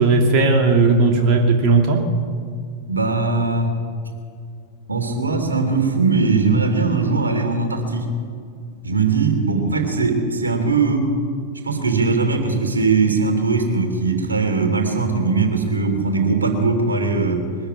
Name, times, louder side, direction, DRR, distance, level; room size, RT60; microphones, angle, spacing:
voice 1, 0.0-2.0, right 3 dB, 40° right, 2 dB, 2.5 m, -16 dB
voice 2, 2.9-3.7 4.9-8.1 8.8-11.1 11.6-17.4, right 4 dB, 75° right, 4 dB, 3.2 m, -20 dB
22.5 x 13.5 x 9.7 m, 2.1 s
figure-of-eight pair, 90°, 0 cm